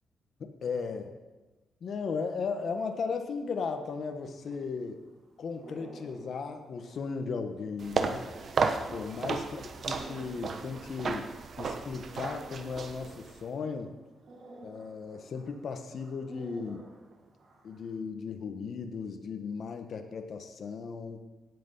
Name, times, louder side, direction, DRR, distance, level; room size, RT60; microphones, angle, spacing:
voice 1, 0.4-1.1 1.8-5.0 5.4-8.2 8.9-11.3 11.6-14.0 14.6-16.9 17.6-21.2, left 5 dB, 60° left, 6 dB, 1.3 m, -36 dB
sound 1, 4.1-18.0, right 2 dB, 70° right, 4.9 m, -53 dB
sound 2, 7.8-13.4, right 5 dB, 55° right, 1.2 m, -34 dB
17.0 x 8.0 x 5.5 m, 1.2 s
cardioid pair, 90°, 0 cm